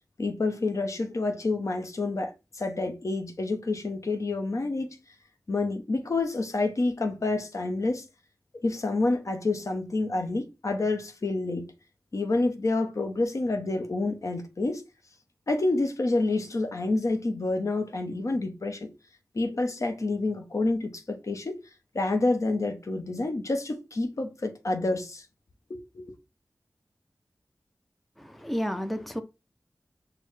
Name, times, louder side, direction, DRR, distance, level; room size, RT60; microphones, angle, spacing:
voice 1, 0.2-5.0 5.5-8.0 8.6-11.7 12.1-14.8 15.5-18.9 19.3-21.6 21.9-25.3 25.7-26.1, left 2 dB, 60° left, 0.7 m, -28 dB
voice 2, 28.2-29.2, equal, ahead, 0.4 m, -31 dB
6.3 x 2.1 x 3.2 m
wide cardioid pair, 65°, 6 cm